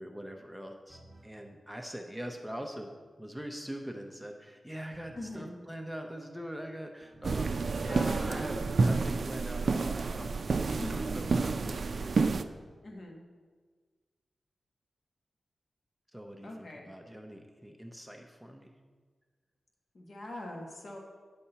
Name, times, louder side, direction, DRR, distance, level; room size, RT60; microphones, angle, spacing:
voice 1, 0.0-12.5 16.1-18.7, equal, ahead, 3 dB, 0.7 m, -43 dB
sound 1, 0.9-1.4 4.9-5.5 7.0-7.7 8.2-8.7, right 2 dB, 25° right, 0.9 m, -55 dB
voice 2, 5.1-5.5 7.9-8.5 10.7-11.2 12.8-13.2 16.4-16.9 19.9-21.0, left 1 dB, 55° left, 0 dB, 1.4 m, -42 dB
sound 2, 7.2-12.4, right 4 dB, 55° right, 0.4 m, -29 dB
9.7 x 4.3 x 6.8 m, 1.5 s
wide cardioid pair, 120°, 0 cm